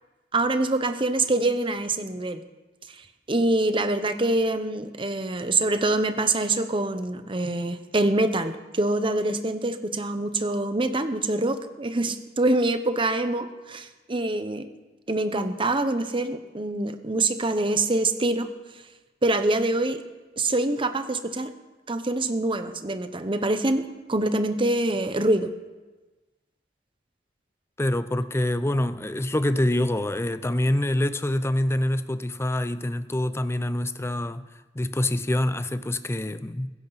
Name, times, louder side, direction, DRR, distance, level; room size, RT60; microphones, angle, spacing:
voice 1, 0.3-2.4 3.0-14.7 15.1-18.5 19.2-20.0 20.4-21.5 21.9-25.5, right 2 dB, 30° right, 0.9 m, -25 dB
voice 2, 27.8-34.5 34.7-36.7, left 1 dB, 15° left, 0.6 m, -26 dB
16.0 x 16.0 x 4.1 m
head